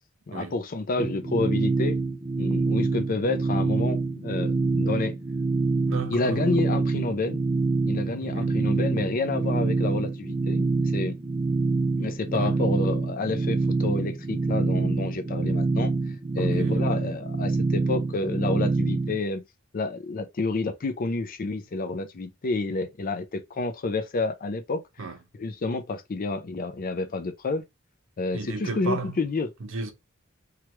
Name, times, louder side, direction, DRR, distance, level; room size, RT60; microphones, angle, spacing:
voice 1, 0.3-2.0 2.4-5.1 6.1-7.4 7.8-11.2 12.0-15.9 16.3-19.4 19.7-25.1 25.4-27.6 28.2-29.5, left 3 dB, 45° left, 0.5 m, -29 dB
sound 1, 1.0-19.2, right 3 dB, 25° right, 0.4 m, -26 dB
voice 2, 5.9-6.4 8.2-8.6 12.3-12.6 16.4-16.9 25.0-25.2 28.3-29.2 29.6-29.9, right 3 dB, 70° right, 0.8 m, -34 dB
3.1 x 2.4 x 2.9 m
head